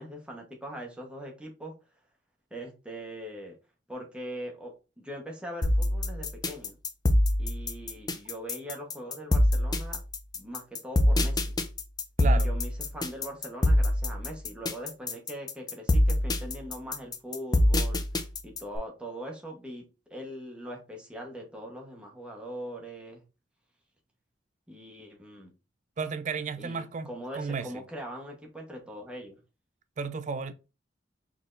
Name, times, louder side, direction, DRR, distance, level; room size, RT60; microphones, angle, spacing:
voice 1, 0.0-1.7 2.5-3.5 3.9-6.8 7.4-10.0 10.4-11.5 12.2-18.0 18.4-19.8 20.1-23.2 24.7-25.5 26.6-29.4, equal, 5° right, 1.0 m, -41 dB
sound 1, 5.6-18.8, left 1 dB, 20° left, 0.5 m, -25 dB
voice 2, 12.2-12.5 26.0-27.8 30.0-30.5, right 5 dB, 40° right, 0.4 m, -33 dB
4.2 x 3.4 x 2.5 m
head